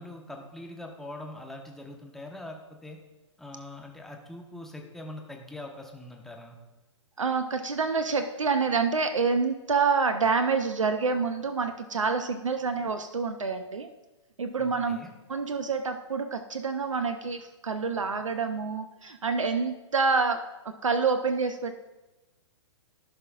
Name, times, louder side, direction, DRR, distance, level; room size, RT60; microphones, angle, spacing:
voice 1, 0.0-3.0 3.4-6.6 14.6-15.1, left 1 dB, ahead, 1 dB, 1.1 m, -43 dB
voice 2, 7.2-13.9 14.4-15.0 15.3-20.4 20.8-21.7, right 4 dB, 85° right, 8 dB, 0.6 m, -27 dB
15.0 x 5.5 x 2.5 m, 1.1 s
figure-of-eight pair, 120°, 16 cm